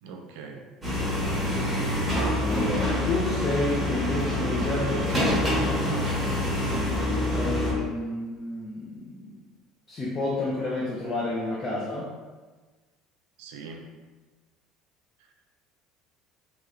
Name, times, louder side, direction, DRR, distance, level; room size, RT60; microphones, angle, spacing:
voice 1, 0.0-0.7 13.4-14.0, right 4 dB, 90° right, 3 dB, 0.4 m, -42 dB
sound 1, 0.8-7.7, left 1 dB, 5° right, 1.1 m, -26 dB
voice 2, 2.4-5.5 7.3-9.4 9.9-12.1, left 2 dB, 25° left, -5 dB, 0.5 m, -30 dB
3.0 x 2.9 x 2.5 m, 1.3 s
cardioid pair, 145°, 0 cm